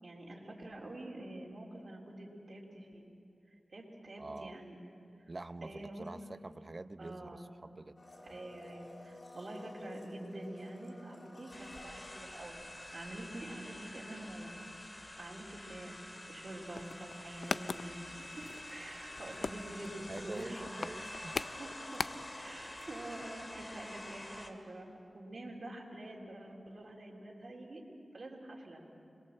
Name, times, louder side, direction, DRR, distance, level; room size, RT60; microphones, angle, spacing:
voice 1, 0.0-3.1 3.5-4.8 5.6-6.1 7.0-7.5 8.2-12.6 12.9-14.5 15.2-16.0 16.3-18.4 18.7-20.6 21.5-24.9 25.1-27.8 28.1-28.8, right 1 dB, 60° right, -2 dB, 3.9 m, -46 dB
voice 2, 4.2-4.6 5.3-8.0 20.1-21.4, right 2 dB, 45° right, 12 dB, 0.7 m, -46 dB
Domestic sounds home sounds, 8.0-13.2 13.5-13.6, left 1 dB, 45° left, 3.7 m, -53 dB
sound 1, 11.5-24.5, left 1 dB, 25° left, 2.3 m, -48 dB
sound 2, 16.6-22.5 22.8-22.9 23.1-23.3, left 4 dB, 80° left, 0.5 m, -41 dB
26.5 x 22.0 x 7.6 m, 2.7 s
wide cardioid pair, 60°, 0 cm